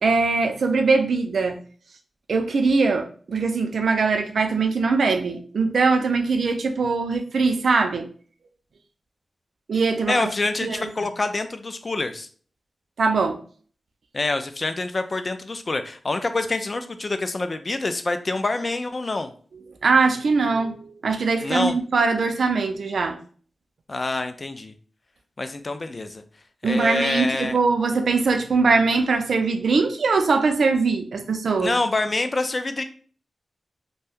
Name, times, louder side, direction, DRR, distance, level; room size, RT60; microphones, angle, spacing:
voice 1, 0.0-1.6 2.3-8.1 9.7-10.3 10.6-10.9 13.0-13.4 19.8-23.2 26.6-31.7, right 4 dB, 75° right, 6 dB, 0.4 m, -21 dB
voice 2, 10.1-12.3 14.1-19.3 21.4-21.8 23.9-24.7 25.4-26.2 26.6-27.6 31.6-32.8, left 2 dB, 40° left, 9 dB, 0.3 m, -26 dB
2.5 x 2.2 x 3.5 m, 0.44 s
wide cardioid pair, 80°, 0 cm